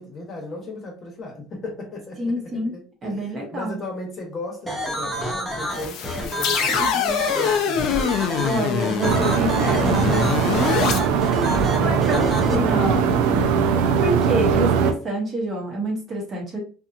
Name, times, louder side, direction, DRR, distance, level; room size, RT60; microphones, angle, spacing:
voice 1, 0.0-7.9 11.7-12.8, left 3 dB, 30° left, 0.9 m, -35 dB
voice 2, 2.2-2.7 3.0-3.8 6.8-6.9 7.8-10.3 10.8-11.0 11.4-12.2 12.5-16.6, right 1 dB, 30° right, 1.0 m, -27 dB
sound 1, 4.7-12.5, right 1 dB, 5° right, 0.7 m, -29 dB
sound 2, 5.7-11.0, left 7 dB, 60° left, 0.4 m, -24 dB
sound 3, 9.0-14.9, right 6 dB, 80° right, 0.4 m, -20 dB
2.7 x 2.5 x 2.5 m
cardioid pair, 135°, 0 cm